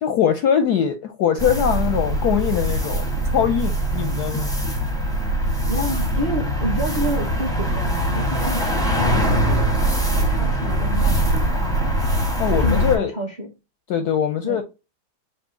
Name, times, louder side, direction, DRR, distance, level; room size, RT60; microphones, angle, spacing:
voice 1, 0.0-3.1 3.3-4.5 12.4-13.1 13.9-14.6, left 8 dB, 70° left, 1.0 m, -21 dB
sound 1, 1.4-13.0, right 1 dB, 5° left, 0.5 m, -22 dB
voice 2, 5.6-11.8 12.6-13.5 14.4-14.6, equal, 30° right, 0.8 m, -29 dB
5.3 x 2.7 x 3.7 m
omnidirectional pair, 2.2 m